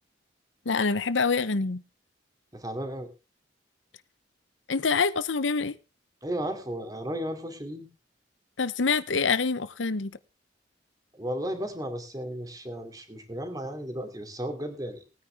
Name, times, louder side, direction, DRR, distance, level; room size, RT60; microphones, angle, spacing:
voice 1, 0.7-1.8 4.7-5.8 8.6-10.1, left 4 dB, 90° left, 0.8 m, -26 dB
voice 2, 2.5-3.1 6.2-7.9 11.2-15.0, equal, 20° right, 2.7 m, -34 dB
20.0 x 9.6 x 3.5 m
head